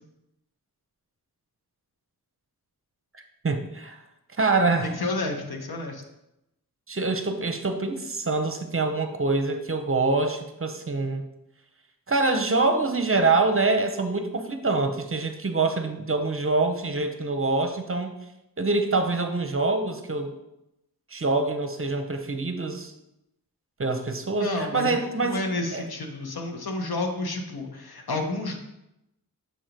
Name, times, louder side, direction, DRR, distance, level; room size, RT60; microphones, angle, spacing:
voice 1, 3.4-4.0 4.4-4.9 6.9-11.2 12.1-18.1 18.6-20.3 21.1-22.9 23.8-25.4 25.7-25.8, right 3 dB, 35° right, 6 dB, 0.7 m, -25 dB
voice 2, 4.8-6.0 24.4-28.5, left 2 dB, 90° left, 3 dB, 0.9 m, -30 dB
6.8 x 2.9 x 5.1 m, 0.87 s
wide cardioid pair, 75°, 36 cm